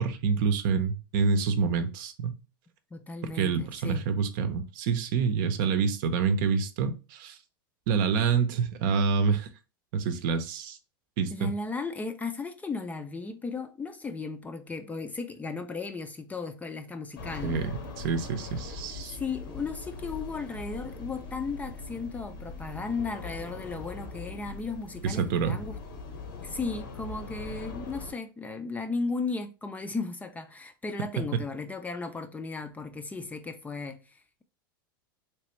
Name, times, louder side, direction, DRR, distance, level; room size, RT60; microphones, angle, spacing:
voice 1, 0.0-2.4 3.3-7.4 7.9-9.5 9.9-10.8 11.2-11.5 17.4-17.8 18.0-19.2 25.0-25.6, right 5 dB, 60° right, 0.7 m, -27 dB
voice 2, 2.9-4.0 11.3-17.6 19.1-25.8 26.4-34.4, left 4 dB, 15° left, 0.4 m, -35 dB
sound 1, 17.1-28.1, left 3 dB, 85° left, 1.1 m, -41 dB
3.3 x 3.2 x 3.0 m
hypercardioid pair, 120°, 12 cm